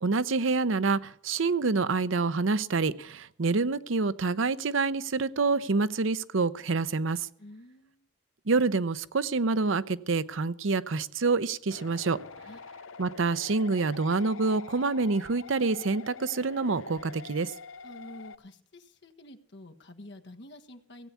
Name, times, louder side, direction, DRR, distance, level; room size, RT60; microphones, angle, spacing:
voice 1, 0.0-7.3 8.5-12.2 13.0-17.5, right 4 dB, 75° right, 16 dB, 0.7 m, -27 dB
voice 2, 7.4-8.1 12.5-12.6 17.8-21.1, left 1 dB, 60° left, 5 dB, 1.4 m, -48 dB
sound 1, 11.7-18.4, left 5 dB, 80° left, 0.7 m, -46 dB
17.0 x 8.4 x 8.3 m, 0.63 s
head